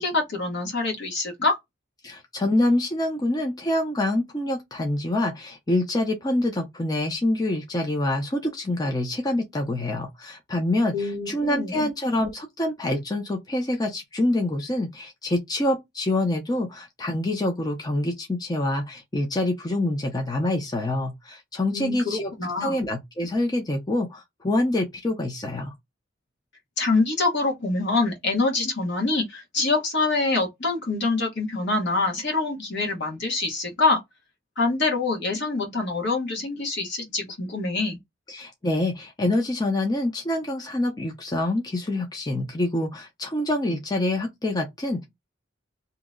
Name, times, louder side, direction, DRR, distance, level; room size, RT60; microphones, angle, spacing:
voice 1, 0.0-1.6 10.9-11.9 21.7-22.8 26.8-34.0 34.6-38.0, left 3 dB, 60° left, 1.1 m, -25 dB
voice 2, 2.0-22.3 22.6-25.7 38.3-45.1, left 1 dB, 20° left, 0.6 m, -26 dB
2.8 x 2.1 x 3.7 m
head